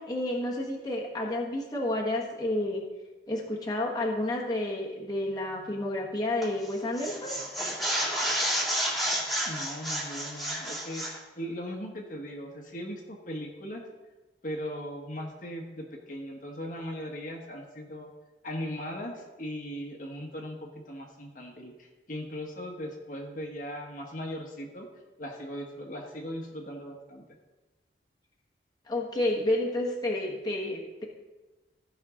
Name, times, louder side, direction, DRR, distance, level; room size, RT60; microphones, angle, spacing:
voice 1, 0.0-2.8 3.3-7.3 28.9-31.1, left 1 dB, 20° left, -3 dB, 1.3 m, -30 dB
sound 1, 6.4-6.7 7.0-11.2, equal, ahead, 2.1 m, -30 dB
voice 2, 9.4-13.8 14.4-18.1 18.4-24.9 25.2-27.2, equal, 45° left, 0 dB, 1.3 m, -38 dB
15.5 x 5.7 x 3.7 m, 1.2 s
head